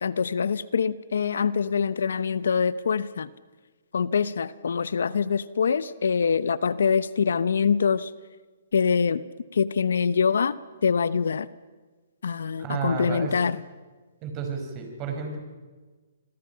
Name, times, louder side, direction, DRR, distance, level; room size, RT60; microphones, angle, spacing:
voice 1, 0.0-3.3 3.9-8.1 8.7-9.2 9.5-10.6 10.8-11.5 12.2-13.6, left 6 dB, 80° left, 17 dB, 0.9 m, -24 dB
voice 2, 12.6-13.3 14.2-15.4, right 6 dB, 30° right, 3 dB, 5.2 m, -31 dB
27.5 x 23.0 x 5.8 m, 1.4 s
hypercardioid pair, 140°, 0 cm